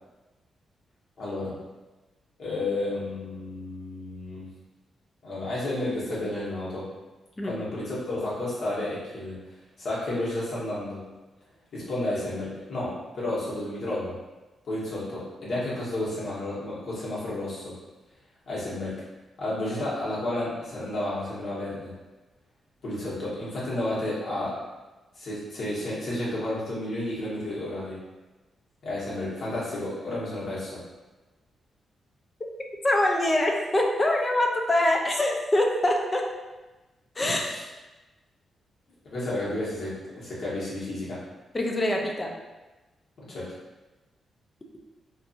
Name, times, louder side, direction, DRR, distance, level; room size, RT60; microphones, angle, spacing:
voice 1, 1.2-1.6 2.4-4.5 5.2-6.9 7.4-9.4 9.8-11.0 11.7-14.1 14.7-17.7 18.5-19.0 19.4-21.9 22.8-24.6 25.2-28.0 28.8-30.8 37.2-37.6 39.1-41.2 43.3-43.5, left 1 dB, 65° left, -8 dB, 1.1 m, -31 dB
voice 2, 32.8-36.3 37.2-37.4 41.5-42.4, left 1 dB, 25° left, 1 dB, 0.4 m, -24 dB
2.6 x 2.5 x 2.4 m, 1.1 s
cardioid pair, 95°, 0 cm